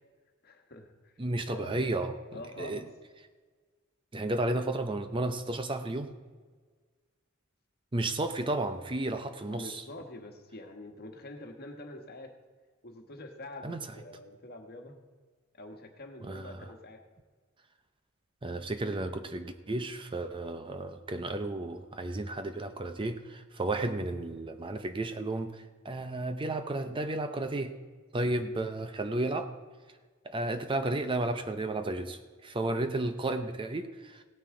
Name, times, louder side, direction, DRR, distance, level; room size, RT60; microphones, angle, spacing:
voice 1, 0.4-1.1 1.4-2.0 2.3-2.9 9.5-12.3 12.8-15.0 15.5-17.1, left 1 dB, 50° left, 4 dB, 1.4 m, -46 dB
voice 2, 1.2-2.1 2.6-2.8 4.1-6.1 7.9-9.8 13.6-13.9 16.2-16.7 18.4-27.7 28.1-29.5 30.2-34.2, right 2 dB, 25° right, 8 dB, 0.6 m, -33 dB
16.5 x 9.4 x 3.8 m, 1.5 s
head